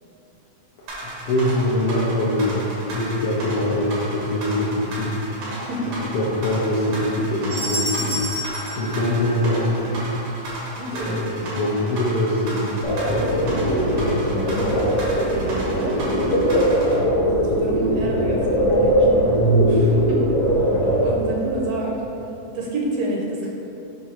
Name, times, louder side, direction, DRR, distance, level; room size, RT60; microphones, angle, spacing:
sound 1, 0.9-16.9, right 1 dB, 90° right, 3.0 m, -34 dB
voice 1, 1.0-5.1 5.9-8.3 8.8-10.1 10.9-14.8, left 1 dB, 75° left, -6 dB, 1.3 m, -24 dB
voice 2, 5.4-6.0 10.7-11.2 15.3-16.5 17.3-19.4 19.7-20.2 21.0-22.0 22.5-23.5, right 2 dB, 75° right, -2 dB, 1.7 m, -29 dB
sound 2, 7.5-9.9, left 1 dB, 55° right, 0.3 m, -30 dB
sound 3, 12.8-21.1, equal, 60° left, 1.8 m, -20 dB
7.6 x 2.7 x 5.7 m, 2.9 s
omnidirectional pair, 3.4 m